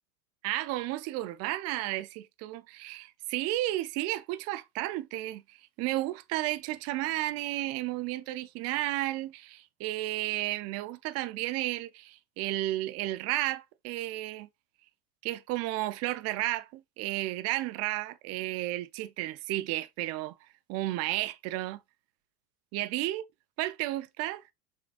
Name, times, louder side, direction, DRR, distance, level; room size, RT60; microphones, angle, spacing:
voice 1, 0.4-14.5 15.2-20.4 20.7-21.8 22.7-23.2 23.6-24.4, right 16 dB, 35° right, 0.5 m, -33 dB
5.8 x 3.6 x 2.3 m
hypercardioid pair, 100°, 43 cm